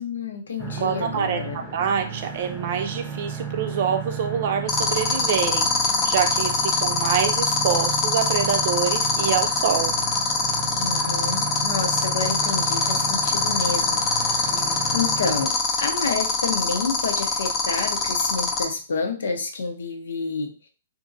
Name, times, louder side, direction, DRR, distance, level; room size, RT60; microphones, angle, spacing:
voice 1, 0.0-1.6 10.8-20.5, left 4 dB, 80° left, 3 dB, 0.7 m, -29 dB
sound 1, 0.6-15.5, right 6 dB, 5° right, 0.7 m, -34 dB
voice 2, 0.8-1.4 1.7-5.7 6.0-10.0 14.5-14.8, right 7 dB, 50° right, 7 dB, 0.5 m, -26 dB
sound 2, 4.7-18.6, left 5 dB, 25° left, 0.6 m, -23 dB
2.8 x 2.6 x 2.6 m, 0.36 s
hypercardioid pair, 140°, 0 cm